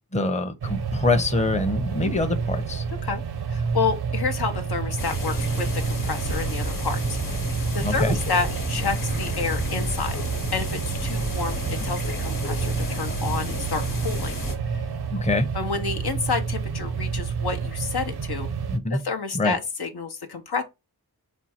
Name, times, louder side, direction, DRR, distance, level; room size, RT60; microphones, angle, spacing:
voice 1, 0.1-2.8 7.8-8.2 11.8-12.0 15.1-15.5 18.7-19.0 19.3-19.6, left 2 dB, 15° left, 0.7 m, -25 dB
sound 1, 0.6-18.8, right 5 dB, 75° right, 0.6 m, -29 dB
voice 2, 3.5-7.2 7.7-10.2 10.5-14.4 14.7-14.8 15.5-18.5 18.9-20.6, left 5 dB, 75° left, 0.8 m, -29 dB
sound 2, 5.0-14.6, left 2 dB, 55° left, 1.2 m, -32 dB
4.4 x 2.3 x 4.2 m
cardioid pair, 40°, 39 cm